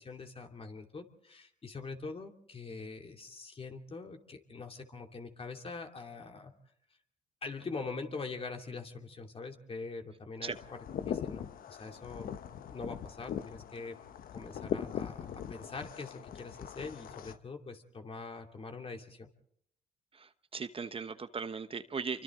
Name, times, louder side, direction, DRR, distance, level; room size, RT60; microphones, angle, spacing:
voice 1, 0.0-6.5 7.4-12.3 12.7-14.0 14.3-19.3, left 4 dB, 40° left, 4 dB, 2.8 m, -43 dB
sound 1, 10.5-17.4, left 9 dB, 70° left, 1.0 m, -40 dB
voice 2, 20.1-22.2, right 5 dB, 40° right, 10 dB, 1.1 m, -38 dB
28.0 x 24.5 x 3.8 m, 0.68 s
supercardioid pair, 70°, 15 cm